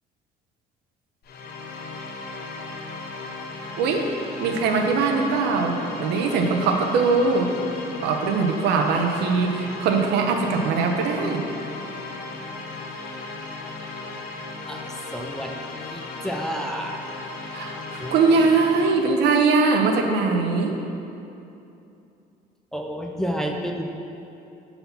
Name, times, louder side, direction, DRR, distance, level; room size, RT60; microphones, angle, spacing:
sound 1, 1.2-19.2, left 3 dB, 65° left, 0.7 m, -36 dB
voice 1, 3.8-4.1 4.4-7.5 8.0-11.4 17.5-20.8, right 4 dB, 80° right, 3 dB, 0.7 m, -21 dB
voice 2, 14.7-15.5 15.8-17.0 18.0-18.5 22.7-23.8, equal, 5° left, 1 dB, 0.5 m, -31 dB
5.6 x 4.2 x 5.6 m, 2.7 s
cardioid pair, 110°, 17 cm